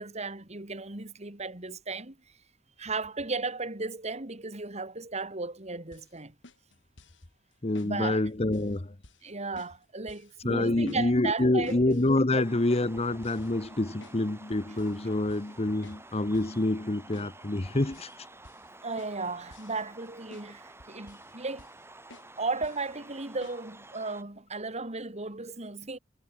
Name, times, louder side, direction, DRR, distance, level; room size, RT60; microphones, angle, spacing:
voice 1, 0.0-2.2 2.8-6.3 7.8-8.2 9.2-12.1 12.3-12.4 18.8-21.7 22.4-26.0, right 3 dB, 35° right, 2.9 m, -35 dB
sound 1, 5.9-6.1 6.4-7.2 7.7-7.9 8.3-8.8 9.0-9.3 9.6-9.8 10.1-10.3 10.6-11.1 11.4-12.2 12.7-14.2 14.5-15.0 15.3-15.5 15.8-16.0 16.3-16.6 17.1-17.3 17.6-18.2 18.4-18.7 19.0-20.1 20.3-20.5 20.8-21.3 21.6-21.8 22.1-22.3 22.6-22.9 23.4-23.6, left 2 dB, 80° left, 4.2 m, -53 dB
voice 2, 7.6-8.9 10.4-18.1, left 2 dB, 35° left, 1.0 m, -27 dB
sound 2, 12.3-24.2, right 2 dB, 15° right, 6.4 m, -51 dB
head